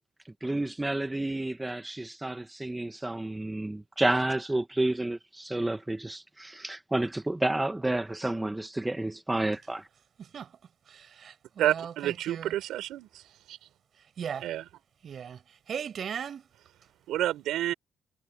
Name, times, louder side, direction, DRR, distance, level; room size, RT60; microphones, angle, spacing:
voice 1, 0.4-9.9, right 2 dB, 10° right, 1.0 m, -30 dB
voice 2, 10.2-10.5 10.9-12.5 14.0-14.5 15.0-16.5, right 8 dB, 55° right, 5.9 m, -38 dB
voice 3, 11.6-13.2 13.5-13.6 14.4-14.6 17.1-17.7, right 13 dB, 85° right, 5.2 m, -29 dB
cardioid pair, 90°, 0 cm